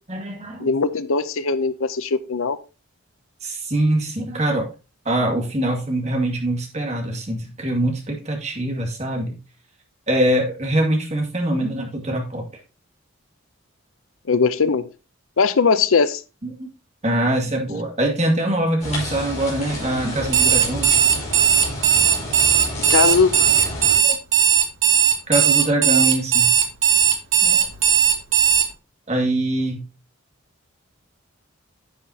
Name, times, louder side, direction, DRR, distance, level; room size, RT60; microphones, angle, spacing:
voice 1, 0.1-0.7 3.4-4.7 5.1-9.4 10.1-12.4 16.4-16.7 17.0-21.0 24.0-24.2 25.3-26.5 27.4-27.7 29.1-29.8, right 1 dB, 30° right, 2 dB, 2.1 m, -23 dB
voice 2, 0.6-2.6 14.3-14.9 15.4-16.2 22.9-23.3, left 5 dB, 75° left, 15 dB, 0.6 m, -19 dB
sound 1, 18.8-24.0, left 1 dB, 35° left, 4.4 m, -31 dB
Alarm, 20.2-28.7, right 9 dB, 70° right, 1.6 m, -17 dB
10.0 x 7.6 x 2.8 m, 0.31 s
head